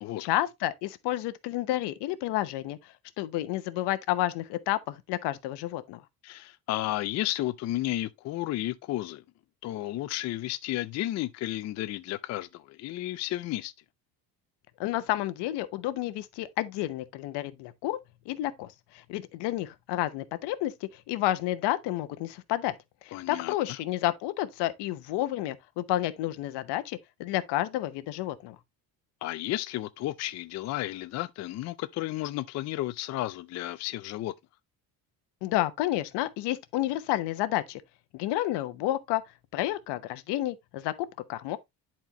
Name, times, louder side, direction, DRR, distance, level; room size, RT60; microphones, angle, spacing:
voice 1, 0.2-2.8 3.2-6.0 14.8-18.0 18.3-22.7 23.0-28.6 35.4-37.8 38.1-39.2 39.5-41.6, left 14 dB, 90° left, 0.9 m, -30 dB
voice 2, 6.2-9.2 9.6-13.7 23.1-23.5 29.2-34.3, left 15 dB, 45° left, 0.4 m, -32 dB
10.5 x 4.4 x 2.8 m
cardioid pair, 175°, 40 cm